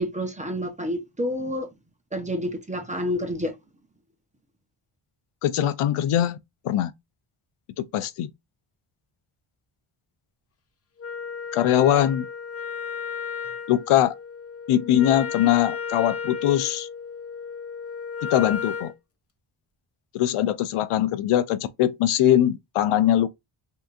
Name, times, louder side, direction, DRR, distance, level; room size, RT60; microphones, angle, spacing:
voice 1, 0.0-1.7 2.1-3.5, equal, 15° right, 0.8 m, -29 dB
voice 2, 5.4-6.4 6.6-6.9 7.8-8.3 11.5-12.3 13.7-14.2 14.7-16.9 18.2-18.9 20.1-23.3, left 11 dB, 80° left, 0.6 m, -21 dB
Wind instrument woodwind instrument, 11.0-19.0, left 6 dB, 30° left, 0.5 m, -34 dB
3.4 x 2.9 x 2.5 m
wide cardioid pair, 100°, 50 cm